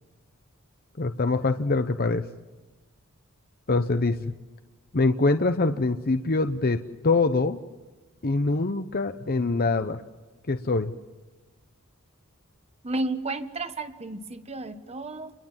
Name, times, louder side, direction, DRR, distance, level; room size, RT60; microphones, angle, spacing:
voice 1, 1.0-2.2 3.7-4.3 4.9-7.6 8.2-10.0 10.5-10.9, left 3 dB, 45° left, 9 dB, 0.8 m, -24 dB
voice 2, 12.8-15.3, right 2 dB, 30° right, 9 dB, 1.4 m, -32 dB
28.5 x 21.5 x 7.4 m, 1.2 s
head